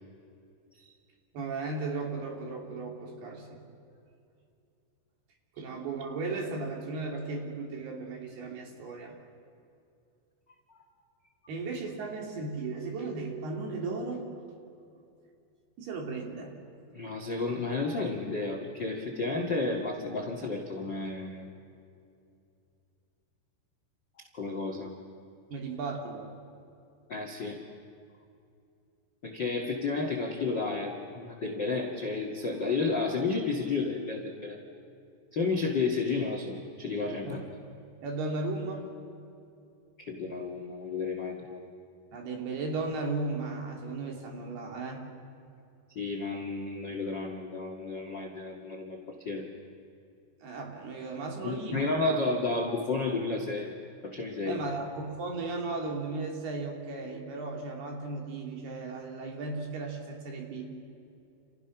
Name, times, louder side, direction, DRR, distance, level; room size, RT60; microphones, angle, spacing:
voice 1, 1.3-3.6 5.6-9.2 11.5-14.4 15.8-16.5 25.5-26.3 37.2-37.5 38.0-38.9 42.1-45.0 50.4-52.2 54.4-60.7, right 3 dB, 60° right, 1 dB, 4.8 m, -36 dB
voice 2, 16.9-21.5 24.3-24.9 27.1-27.6 29.2-34.6 35.3-37.4 40.0-41.7 45.9-49.0 49.2-49.4 51.4-53.7 54.0-54.6, left 3 dB, 45° left, 2 dB, 1.4 m, -32 dB
29.5 x 29.5 x 6.0 m, 2.5 s
omnidirectional pair, 5.3 m